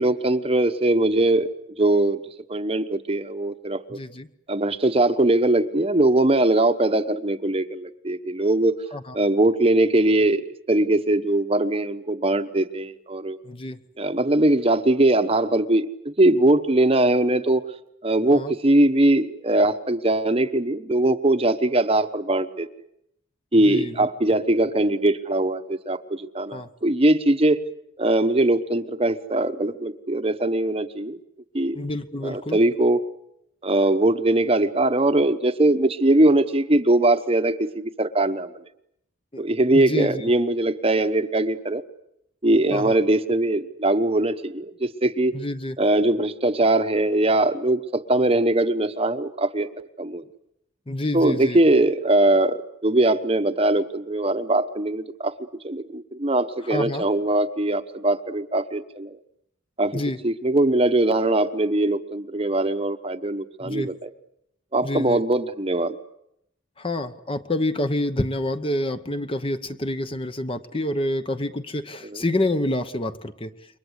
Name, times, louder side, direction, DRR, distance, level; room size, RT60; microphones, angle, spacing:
voice 1, 0.0-1.5 1.8-2.2 2.5-4.0 4.5-8.8 9.1-13.4 14.0-17.6 18.0-22.7 23.5-27.6 28.0-31.2 31.5-31.8 32.2-33.0 33.6-38.5 39.4-41.8 42.4-45.3 45.8-49.7 50.0-50.2 51.1-55.3 55.6-59.2 59.8-64.1 64.7-66.0 72.0-72.2, right 2 dB, 30° right, 10 dB, 1.0 m, -21 dB
voice 2, 3.9-4.3 8.9-9.1 13.4-13.8 18.3-18.5 23.5-23.9 26.5-26.7 31.7-32.6 39.3-39.4 39.7-40.2 42.7-43.0 45.3-45.8 50.9-51.6 56.6-57.0 59.9-60.2 63.6-63.9 64.8-65.2 66.8-73.5, left 1 dB, 25° left, 10 dB, 1.0 m, -28 dB
28.5 x 23.5 x 8.2 m, 0.78 s
head